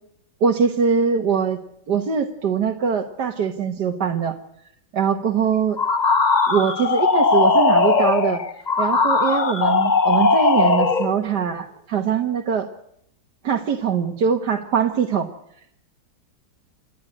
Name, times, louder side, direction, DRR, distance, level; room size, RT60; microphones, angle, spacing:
voice 1, 0.4-1.6 1.9-4.4 4.9-5.8 6.5-8.4 8.8-12.7 13.4-15.3, right 6 dB, 60° right, 3 dB, 1.9 m, -22 dB
sound 1, 5.8-11.2, left 4 dB, 30° left, 1.0 m, -18 dB
28.5 x 10.5 x 9.9 m, 0.74 s
omnidirectional pair, 2.1 m